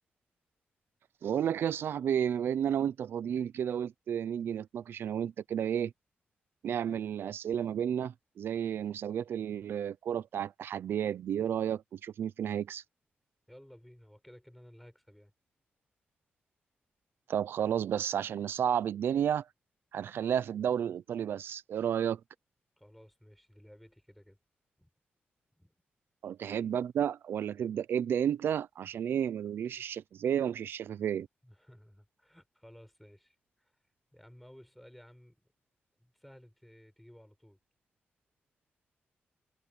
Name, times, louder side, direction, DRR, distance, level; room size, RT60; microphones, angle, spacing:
voice 1, 1.2-5.9 6.6-12.8 17.3-19.4 19.9-22.2 26.2-31.3, right 9 dB, 75° right, 0.6 m, -32 dB
voice 2, 13.5-15.3 22.8-24.4 24.8-24.9 25.6-25.7 31.4-33.7 34.1-35.4 36.0-37.6, equal, 5° left, 5.2 m, -56 dB
wide cardioid pair, 145°, 4 cm